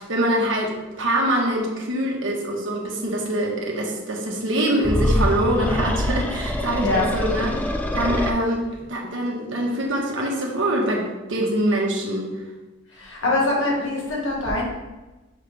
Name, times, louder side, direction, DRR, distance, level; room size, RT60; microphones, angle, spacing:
voice 1, 0.0-12.3, right 1 dB, 75° right, -1 dB, 1.4 m, -24 dB
sound 1, 4.8-8.3, left 1 dB, 10° left, 0.3 m, -24 dB
voice 2, 12.9-14.6, left 2 dB, 80° left, -3 dB, 1.8 m, -23 dB
5.8 x 5.5 x 3.4 m, 1.1 s
head